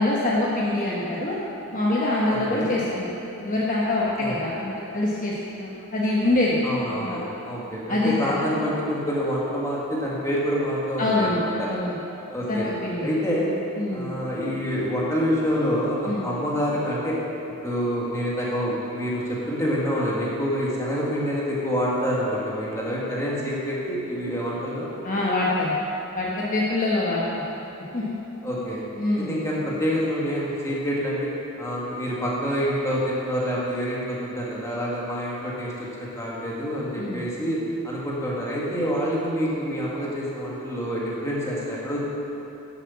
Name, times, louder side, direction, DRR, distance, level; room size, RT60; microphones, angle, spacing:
voice 1, 0.0-1.4 1.7-6.6 6.9-7.2 7.9-8.4 11.0-11.4 11.6-11.9 12.5-13.1 13.8-14.1 16.0-16.2 25.0-25.7 26.1-27.4 27.9-28.2 29.0-29.4 37.0-37.2, left 2 dB, 35° left, -5 dB, 1.2 m, -25 dB
voice 2, 2.3-2.7 4.2-4.4 6.6-11.7 12.3-12.7 13.0-13.5 13.9-17.2 17.6-24.9 28.4-28.8 29.1-42.0, equal, 15° left, -6 dB, 2.0 m, -27 dB
11.0 x 7.9 x 7.2 m, 3.0 s
head